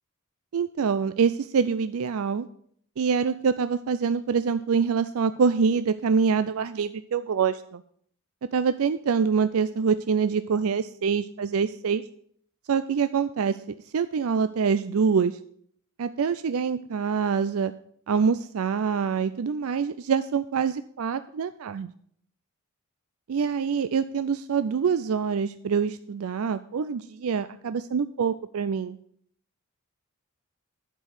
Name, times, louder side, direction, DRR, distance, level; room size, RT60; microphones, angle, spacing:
voice 1, 0.5-2.5 3.0-7.8 8.5-12.0 12.7-13.6 13.9-15.4 16.0-17.7 18.1-21.9 23.3-29.0, right 6 dB, 75° right, 11 dB, 0.4 m, -25 dB
11.0 x 4.6 x 8.2 m, 0.63 s
head